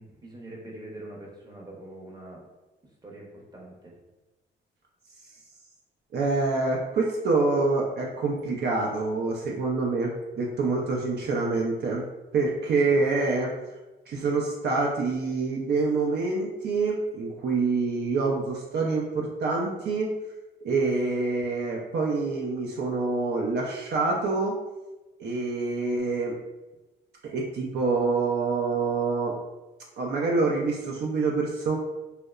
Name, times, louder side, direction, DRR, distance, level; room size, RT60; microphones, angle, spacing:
voice 1, 0.0-2.5 3.0-4.0 12.8-13.0, right 1 dB, 20° right, -2 dB, 0.7 m, -44 dB
voice 2, 6.1-12.0 12.3-13.5 14.1-20.1 20.6-24.5 25.2-26.4 27.2-29.4 30.0-31.7, right 3 dB, 60° right, -1 dB, 0.4 m, -26 dB
2.8 x 2.0 x 2.3 m, 1.1 s
cardioid pair, 90°, 20 cm